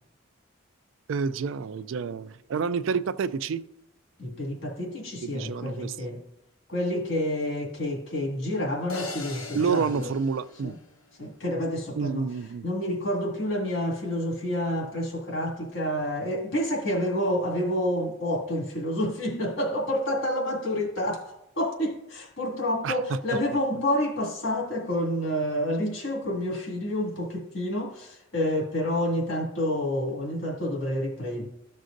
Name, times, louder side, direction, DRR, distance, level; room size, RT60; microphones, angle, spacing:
voice 1, 1.1-3.6 5.2-6.1 9.5-10.8 12.0-12.6 22.8-23.2, right 5 dB, 70° right, 0.3 m, -29 dB
voice 2, 4.2-6.2 6.7-10.1 10.6-10.8 11.2-12.3 12.6-31.5, left 1 dB, 65° left, 2.1 m, -29 dB
sound 1, 8.9-11.2, left 3 dB, 85° left, 1.0 m, -40 dB
13.5 x 6.3 x 2.6 m
head